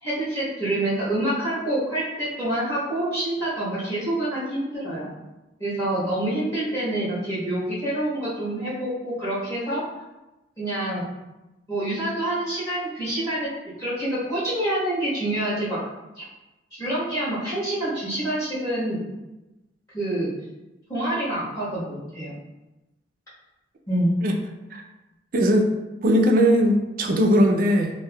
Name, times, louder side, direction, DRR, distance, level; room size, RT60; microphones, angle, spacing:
voice 1, 0.0-5.1 5.6-9.8 10.6-11.0 11.7-13.5 13.8-15.8 16.7-19.0 19.9-20.3 20.9-22.3 23.9-24.1, right 1 dB, 15° left, -12 dB, 1.2 m, -27 dB
voice 2, 25.3-25.7 26.0-27.9, equal, 50° right, 2 dB, 0.4 m, -19 dB
3.4 x 2.5 x 2.2 m, 1.0 s
head